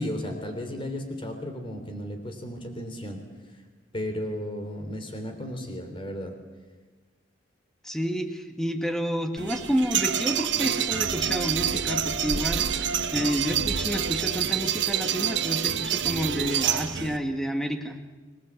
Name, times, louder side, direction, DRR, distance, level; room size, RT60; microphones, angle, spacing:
voice 1, 0.0-3.2 3.9-6.3, left 1 dB, 25° left, 5 dB, 3.4 m, -34 dB
voice 2, 7.8-18.0, equal, ahead, 5 dB, 1.7 m, -30 dB
sound 1, 9.4-17.2, right 8 dB, 65° right, 1.5 m, -27 dB
26.5 x 19.5 x 8.3 m, 1.3 s
head